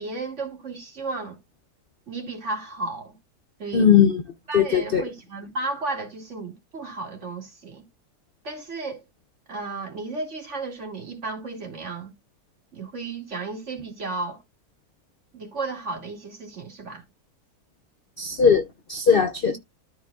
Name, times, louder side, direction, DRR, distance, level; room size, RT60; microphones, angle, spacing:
voice 1, 0.0-1.4 2.1-3.2 3.6-3.9 4.5-7.8 8.4-9.0 9.5-12.1 12.7-14.4 15.3-17.0 19.5-19.6, right 3 dB, 45° right, 2.7 m, -33 dB
voice 2, 3.7-4.2 4.5-5.0 18.2-19.6, left 7 dB, 50° left, 0.7 m, -19 dB
13.0 x 4.7 x 2.4 m
omnidirectional pair, 1.7 m